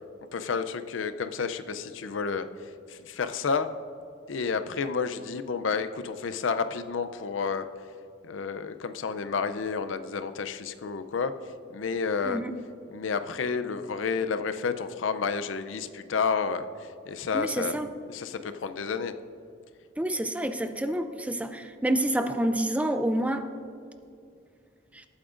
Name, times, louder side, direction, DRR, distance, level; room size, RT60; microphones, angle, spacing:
voice 1, 0.3-3.7 4.3-7.7 8.2-12.4 12.9-19.2, left 5 dB, 80° left, 11 dB, 0.5 m, -30 dB
voice 2, 17.3-17.9 20.0-23.5 24.9-25.1, right 1 dB, 5° right, 8 dB, 0.5 m, -28 dB
19.0 x 8.7 x 2.5 m, 2.4 s
head